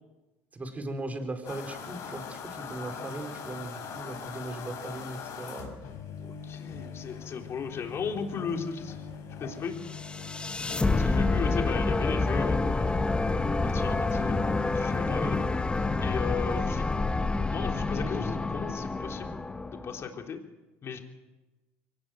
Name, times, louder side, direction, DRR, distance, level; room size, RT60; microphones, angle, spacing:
voice 1, 0.5-5.8 15.1-15.4, right 2 dB, 25° right, 6 dB, 4.4 m, -38 dB
sound 1, 1.4-16.3, left 6 dB, 60° left, 5.7 m, -42 dB
voice 2, 6.2-9.0 9.4-9.8 10.9-13.2 13.5-14.4 14.7-15.6 15.9-16.9 17.5-19.4 19.7-20.4 20.8-21.0, left 6 dB, 40° left, 3 dB, 3.7 m, -36 dB
sound 2, 9.9-20.1, left 3 dB, 15° left, 1.2 m, -28 dB
23.5 x 18.5 x 7.8 m, 1.1 s
supercardioid pair, 90°, 7 cm